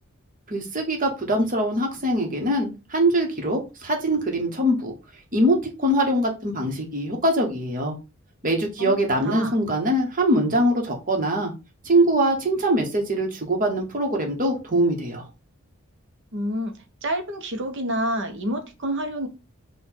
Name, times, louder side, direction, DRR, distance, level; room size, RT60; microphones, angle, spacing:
voice 1, 0.5-4.9 5.3-8.0 8.4-11.5 11.8-15.3, right 1 dB, 40° right, 1.3 m, -23 dB
voice 2, 9.2-9.6 16.3-19.3, equal, 60° right, 0.9 m, -28 dB
4.4 x 2.5 x 4.4 m
head